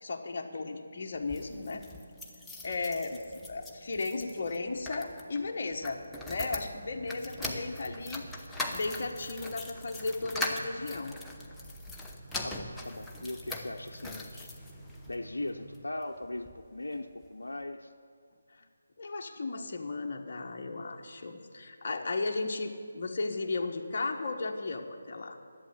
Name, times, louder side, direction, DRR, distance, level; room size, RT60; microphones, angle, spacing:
voice 1, 0.0-1.8 2.6-3.2 3.5-8.2 8.7-11.1 19.0-25.4, left 3 dB, 50° left, 2 dB, 1.3 m, -35 dB
sound 1, 1.1-15.2 15.7-16.6 16.9-17.0 17.2-17.3, left 2 dB, 5° left, 0.8 m, -41 dB
voice 2, 3.1-3.5 12.4-14.5 15.1-17.9, left 2 dB, 85° left, 3 dB, 0.7 m, -39 dB
sound 2, 6.8-15.8, right 1 dB, 45° right, 3.0 m, -50 dB
11.0 x 8.3 x 9.2 m, 2.1 s
figure-of-eight pair, 160°, 0 cm